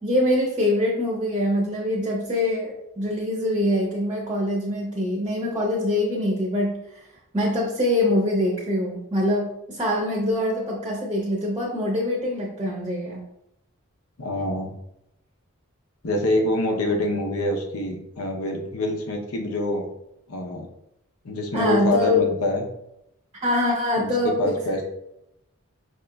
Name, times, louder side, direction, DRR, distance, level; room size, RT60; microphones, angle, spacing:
voice 1, 0.0-7.0 7.3-13.2 21.5-22.2 23.4-24.8, left 1 dB, 20° right, -2 dB, 0.6 m, -24 dB
voice 2, 14.2-14.7 16.0-19.9 20.3-20.7 21.2-22.6 24.0-24.8, left 1 dB, 85° left, 2 dB, 0.7 m, -25 dB
5.1 x 2.9 x 2.3 m, 0.82 s
head